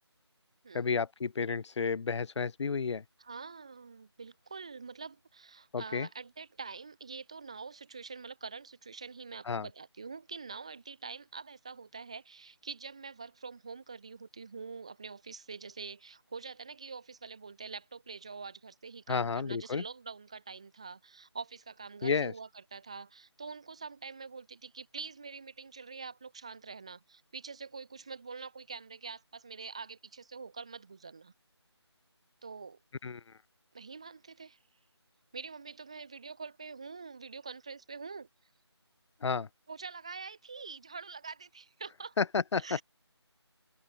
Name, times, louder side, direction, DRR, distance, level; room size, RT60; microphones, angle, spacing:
voice 1, 0.7-3.0 5.7-6.1 9.5-9.7 19.1-19.8 22.0-22.3 33.0-33.2 39.2-39.5 42.2-42.8, left 5 dB, 80° left, 0.4 m, -31 dB
voice 2, 3.2-31.3 32.4-32.8 33.7-34.6 35.3-38.3 39.7-42.2 42.6-42.8, right 5 dB, 15° right, 1.0 m, -45 dB
figure-of-eight pair, 175°, 15 cm